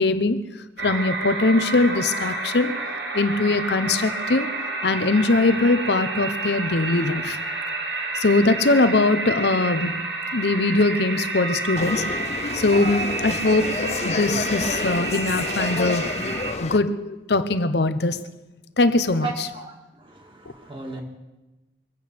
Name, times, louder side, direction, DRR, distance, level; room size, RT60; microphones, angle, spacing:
voice 1, 0.0-4.5 4.8-7.4 8.1-12.2 12.5-16.1 16.6-18.2 18.8-19.5, left 2 dB, 65° left, 12 dB, 0.9 m, -22 dB
sound 1, 0.8-16.5, right 3 dB, 65° right, 1.8 m, -30 dB
sound 2, 11.8-16.8, left 3 dB, 35° left, 0.5 m, -29 dB
voice 2, 19.2-21.0, right 3 dB, 25° right, 2 dB, 2.1 m, -35 dB
23.0 x 8.5 x 6.9 m, 1.1 s
head